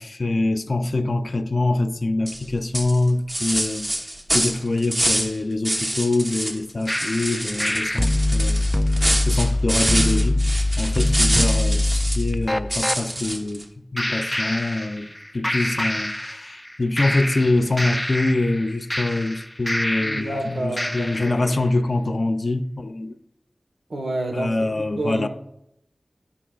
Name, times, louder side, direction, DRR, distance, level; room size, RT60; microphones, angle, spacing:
voice 1, 0.0-8.7 9.3-10.4 10.8-13.7 13.9-23.2 24.3-25.3, left 2 dB, 60° left, 0.6 m, -24 dB
sound 1, 2.3-2.4 2.7-5.4 5.6-6.6 6.9-12.3 12.7-13.6, right 1 dB, 30° right, 1.2 m, -26 dB
sound 2, 6.9-13.0 14.0-15.2 15.4-16.7 17.0-20.4 20.8-21.4, left 1 dB, 10° left, 0.4 m, -24 dB
voice 2, 20.0-21.5 23.9-25.3, right 1 dB, 85° right, 1.3 m, -29 dB
14.0 x 5.4 x 2.4 m
cardioid pair, 40°, 0 cm